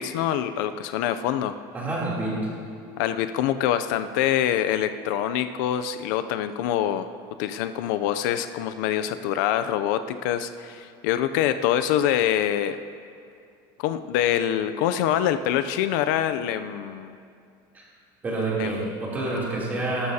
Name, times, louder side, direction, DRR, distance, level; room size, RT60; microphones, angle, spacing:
voice 1, 0.0-1.5 3.0-7.1 7.4-12.8 13.8-17.2 18.6-18.9, left 11 dB, 65° left, 11 dB, 0.5 m, -25 dB
voice 2, 1.7-2.5 17.7-17.8 18.2-20.1, right 2 dB, 15° right, -6 dB, 3.0 m, -28 dB
19.5 x 13.0 x 2.8 m, 2.4 s
cardioid pair, 170°, 11 cm